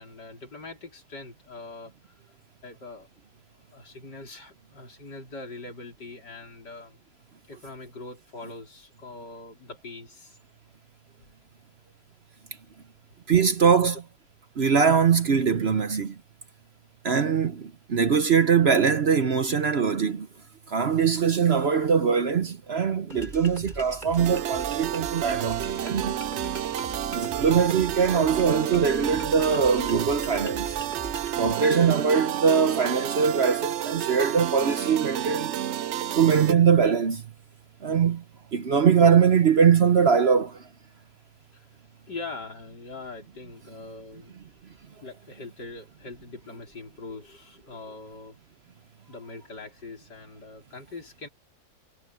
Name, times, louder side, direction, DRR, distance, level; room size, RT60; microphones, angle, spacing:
voice 1, 0.0-1.9 2.6-3.1 3.7-7.0 7.5-10.4 13.6-13.8 27.0-27.1 41.5-41.7 42.1-44.4 45.0-48.4 49.1-51.3, left 3 dB, 70° left, 4.9 m, -42 dB
voice 2, 13.3-14.0 14.6-16.2 17.0-20.3 20.7-26.2 27.1-30.7 31.4-35.6 36.1-37.2 37.8-38.2 38.5-40.6, right 6 dB, 50° right, 0.8 m, -22 dB
sound 1, 23.1-31.5, right 1 dB, 25° right, 6.6 m, -41 dB
sound 2, 24.2-36.5, right 11 dB, 85° right, 0.6 m, -30 dB
omnidirectional pair, 1.9 m